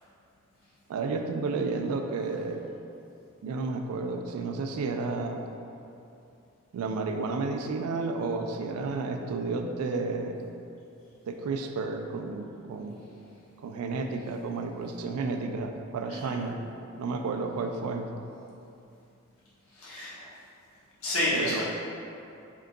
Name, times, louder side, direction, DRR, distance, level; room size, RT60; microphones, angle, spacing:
voice 1, 0.9-2.6 3.4-5.4 6.7-10.4 11.3-13.0 13.6-16.6 17.0-18.1 21.3-21.6, right 3 dB, 90° right, 5 dB, 0.3 m, -31 dB
voice 2, 19.7-20.2 21.0-21.6, left 1 dB, 75° left, -9 dB, 1.1 m, -30 dB
3.7 x 3.7 x 2.2 m, 2.7 s
head